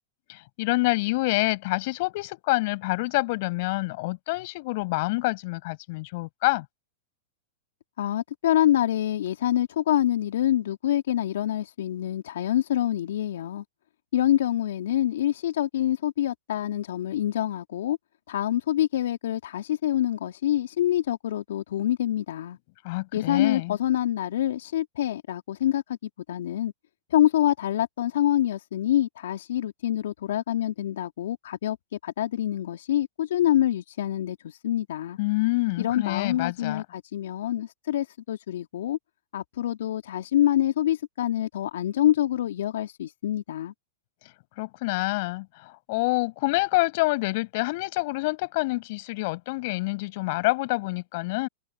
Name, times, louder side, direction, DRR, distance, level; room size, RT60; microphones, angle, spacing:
voice 1, 0.3-6.6 22.8-23.8 35.2-36.8 44.6-45.5 45.9-51.5, left 23 dB, 55° left, 6.4 m, -27 dB
voice 2, 8.0-13.6 14.1-18.0 18.3-22.6 23.1-26.7 27.1-31.8 32.0-35.2 35.8-39.0 39.3-43.7, left 12 dB, 70° left, 2.3 m, -26 dB
hypercardioid pair, 110°, 0 cm